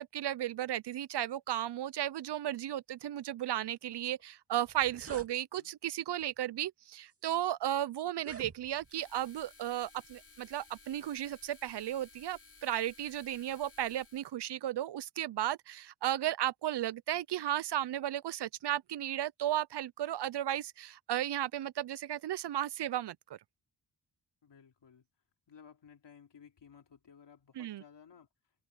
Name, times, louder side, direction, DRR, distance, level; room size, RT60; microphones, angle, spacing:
voice 1, 0.0-23.2 27.6-27.8, right 12 dB, 70° right, 0.5 m, -34 dB
sound 1, 4.2-4.3 4.6-5.3 6.2-6.4 7.1-7.2 8.1-9.0, right 4 dB, 30° right, 2.4 m, -49 dB
sound 2, 8.8-14.3, left 4 dB, 30° left, 7.0 m, -58 dB
voice 2, 24.4-25.0 25.5-28.3, left 7 dB, 75° left, 3.2 m, -57 dB
open air
wide cardioid pair, 175°, 43 cm